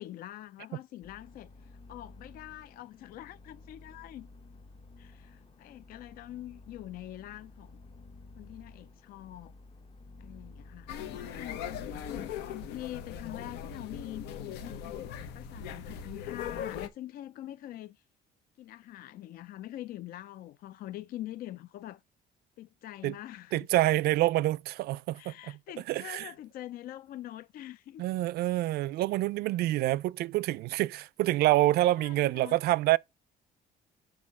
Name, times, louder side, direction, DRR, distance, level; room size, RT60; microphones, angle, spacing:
voice 1, 0.0-4.3 5.0-7.8 8.4-9.5 10.2-11.7 12.2-14.3 15.3-18.0 18.6-22.0 22.6-23.7 25.1-28.0 32.0-32.6, left 14 dB, 60° left, 0.4 m, -44 dB
sound 1, 1.0-13.4, left 3 dB, 35° left, 0.8 m, -53 dB
sound 2, 10.9-16.9, left 8 dB, 90° left, 1.0 m, -39 dB
voice 2, 23.5-25.3 25.9-26.3 28.0-33.0, right 16 dB, 70° right, 0.4 m, -27 dB
6.5 x 4.7 x 5.6 m
cardioid pair, 110°, 17 cm